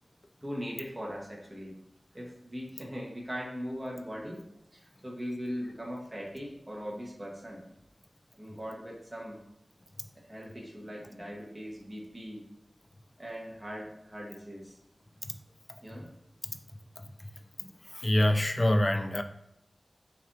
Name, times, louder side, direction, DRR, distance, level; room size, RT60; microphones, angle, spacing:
voice 1, 0.4-1.8 2.1-4.4 4.7-7.6 8.4-9.4 10.3-12.4 13.2-14.8 15.8-16.1, equal, 25° right, -3 dB, 1.2 m, -40 dB
voice 2, 17.9-19.2, left 1 dB, 35° left, 7 dB, 0.4 m, -25 dB
5.9 x 2.7 x 2.7 m, 0.81 s
wide cardioid pair, 55°, 0 cm